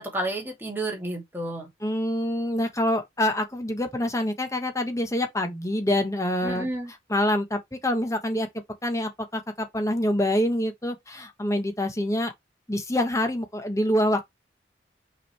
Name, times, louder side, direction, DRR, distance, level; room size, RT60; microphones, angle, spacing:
voice 1, 0.0-1.7 6.4-6.9, right 1 dB, 10° right, 2.6 m, -31 dB
voice 2, 1.8-6.7 7.1-8.5 8.8-12.3 12.7-14.3, left 1 dB, 15° left, 1.4 m, -26 dB
6.0 x 5.0 x 3.5 m
head